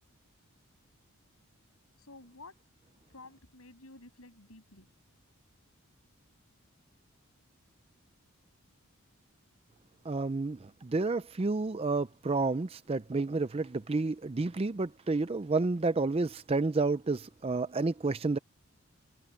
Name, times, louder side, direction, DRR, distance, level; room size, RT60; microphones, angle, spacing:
voice 1, 2.0-2.6 3.1-4.9, left 2 dB, 75° left, 7.3 m, -52 dB
voice 2, 10.1-18.4, right 3 dB, 25° right, 0.4 m, -30 dB
open air
head